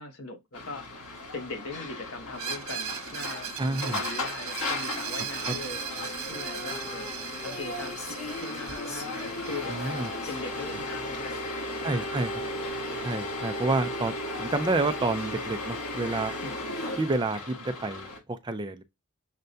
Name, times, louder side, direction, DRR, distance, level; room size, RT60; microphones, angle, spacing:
voice 1, 0.0-5.8 6.2-7.1 7.4-10.0 10.3-11.4 11.7-12.1 12.4-13.1 16.4-16.8, left 3 dB, 75° left, 0.9 m, -41 dB
sound 1, 0.5-18.2, left 2 dB, 90° left, 1.5 m, -36 dB
Screech, 2.3-12.0, right 8 dB, 80° right, 0.7 m, -39 dB
voice 2, 3.6-4.0 5.5-5.6 9.7-10.1 11.8-12.3 13.0-16.3 17.0-18.8, right 2 dB, 20° right, 0.4 m, -29 dB
Female singing, 4.6-12.1, left 2 dB, 30° left, 0.9 m, -43 dB
6.5 x 2.2 x 2.6 m
head